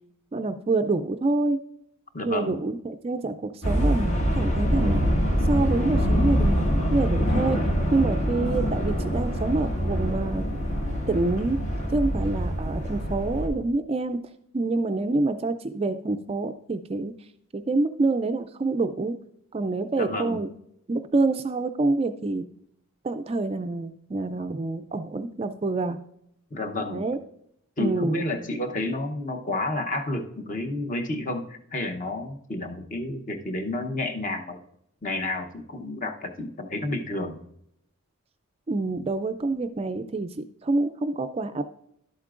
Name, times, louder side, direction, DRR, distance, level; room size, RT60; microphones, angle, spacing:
voice 1, 0.3-1.6 2.2-5.0 5.5-7.6 7.9-10.4 11.1-11.6 11.9-14.3 14.5-17.1 17.5-19.1 19.5-20.5 20.9-22.5 23.0-26.0 26.9-27.2 27.8-28.2 38.7-41.7, right 3 dB, 25° right, 8 dB, 0.3 m, -27 dB
voice 2, 2.1-2.6 20.0-20.4 24.4-24.5 26.5-27.0 27.8-34.6 35.0-37.4, left 2 dB, 35° left, 5 dB, 0.9 m, -30 dB
sound 1, 3.6-13.5, equal, 65° left, 1.9 m, -25 dB
11.5 x 8.1 x 2.5 m, 0.74 s
head